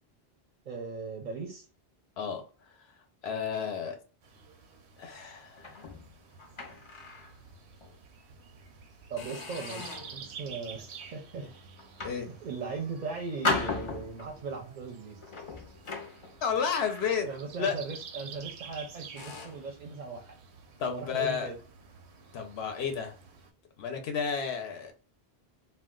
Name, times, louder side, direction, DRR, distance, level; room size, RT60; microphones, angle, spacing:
voice 1, 0.6-1.7 9.1-11.5 12.1-15.2 17.3-20.4 20.8-21.6, right 4 dB, 55° right, 0.6 m, -38 dB
voice 2, 2.2-2.9 3.2-4.0 5.0-5.9 12.0-12.3 16.4-17.3 17.6-17.7 20.8-21.5 22.3-23.1 23.8-24.9, left 6 dB, 80° left, 0.8 m, -32 dB
sound 1, 4.2-23.5, right 6 dB, 90° right, 0.8 m, -50 dB
sound 2, 5.6-7.4 7.8-8.0 8.5-8.7 9.2-10.2 10.8-11.1 11.8-12.8 13.4-14.4 15.2-17.6 17.8-18.1 18.7-18.8 19.2-19.7, left 3 dB, 40° left, 0.5 m, -37 dB
2.3 x 2.2 x 3.6 m
omnidirectional pair, 1.1 m